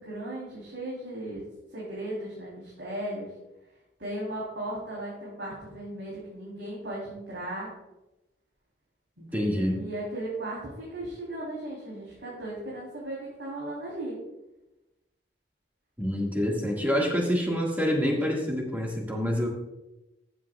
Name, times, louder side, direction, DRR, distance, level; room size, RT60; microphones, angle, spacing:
voice 1, 0.0-1.4 1.7-3.3 4.0-7.7 9.2-14.2, right 1 dB, 90° right, -6 dB, 3.4 m, -36 dB
voice 2, 9.3-9.8 16.0-19.5, equal, 10° right, -1 dB, 1.8 m, -27 dB
14.0 x 8.1 x 2.4 m, 0.96 s
head